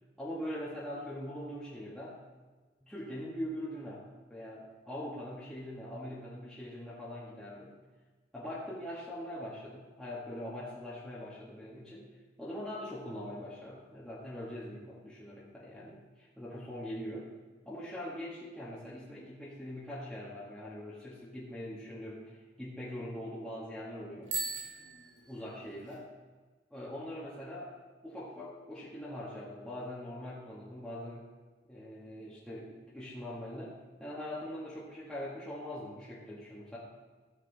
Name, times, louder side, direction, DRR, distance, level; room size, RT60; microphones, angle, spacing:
voice 1, 0.2-2.2 2.8-7.7 8.3-12.1 12.4-17.3 17.7-22.3 22.6-24.3 25.3-26.1 26.7-27.8 28.0-31.3 31.7-33.7 34.0-36.8, left 1 dB, 5° left, -9 dB, 1.7 m, -42 dB
Bicycle bell, 24.2-26.0, right 4 dB, 90° right, 2.4 m, -39 dB
15.0 x 7.1 x 4.1 m, 1.4 s
head